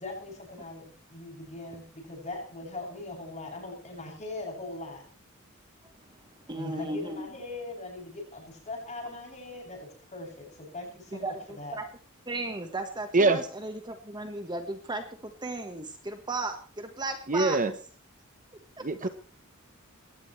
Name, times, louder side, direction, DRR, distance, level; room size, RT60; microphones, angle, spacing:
voice 1, 0.0-5.0 6.5-11.8, left 2 dB, 35° left, -1 dB, 7.6 m, -40 dB
voice 2, 5.8-6.2 6.5-7.3 11.1-11.9 12.3-17.6 18.8-19.1, right 2 dB, 20° right, 6 dB, 1.4 m, -36 dB
voice 3, 17.3-17.7 18.8-19.1, right 3 dB, 40° right, 10 dB, 1.0 m, -23 dB
21.0 x 17.5 x 3.3 m, 0.40 s
head